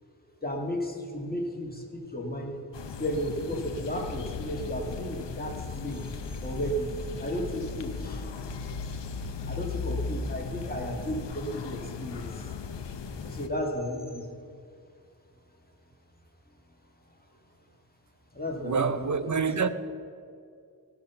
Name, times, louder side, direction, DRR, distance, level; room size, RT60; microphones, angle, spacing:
voice 1, 0.4-2.6 3.0-6.0 6.4-6.9 7.2-8.2 9.5-12.3 13.2-14.3 18.3-19.4, equal, 20° left, 1.9 m, -33 dB
sound 1, 2.7-13.5, left 4 dB, 90° left, 0.8 m, -37 dB
voice 2, 18.6-19.7, right 5 dB, 45° right, 0.7 m, -26 dB
16.5 x 5.8 x 6.8 m
wide cardioid pair, 60°, 42 cm